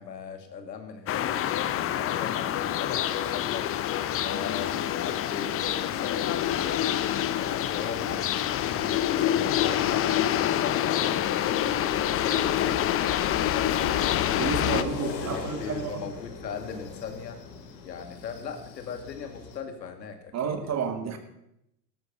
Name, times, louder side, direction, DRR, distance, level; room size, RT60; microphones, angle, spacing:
voice 1, 0.0-3.7 4.2-6.9 7.4-12.8 13.2-17.4 17.8-20.8, left 6 dB, 85° left, 6 dB, 2.4 m, -39 dB
sound 1, 1.1-14.8, left 11 dB, 25° left, 0.8 m, -26 dB
sound 2, 4.5-19.6, left 6 dB, 55° left, 3.6 m, -42 dB
voice 2, 14.4-16.0 20.3-21.2, right 6 dB, 30° right, 7 dB, 2.4 m, -31 dB
13.0 x 12.5 x 5.7 m, 0.80 s
hypercardioid pair, 105°, 49 cm